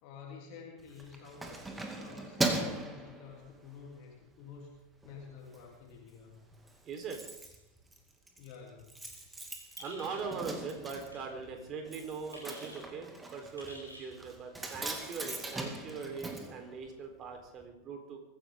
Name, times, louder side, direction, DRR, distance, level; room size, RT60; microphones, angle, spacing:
voice 1, 0.0-6.4 8.4-8.9, left 5 dB, 45° left, -1 dB, 3.3 m, -50 dB
Keys jangling, 0.8-3.9 4.3-4.6 4.9-5.6 5.9-6.0 6.2-6.3 6.5-17.3 17.6-17.7, right 2 dB, 10° right, 2.4 m, -40 dB
voice 2, 6.8-7.2 9.8-18.2, right 5 dB, 30° right, 4 dB, 4.0 m, -41 dB
sound 1, 9.8-10.3 11.1-11.3 12.3-12.8 13.6-14.1, equal, 85° right, 7.5 m, -50 dB
23.5 x 15.0 x 3.8 m, 0.91 s
figure-of-eight pair, 90°, 0 cm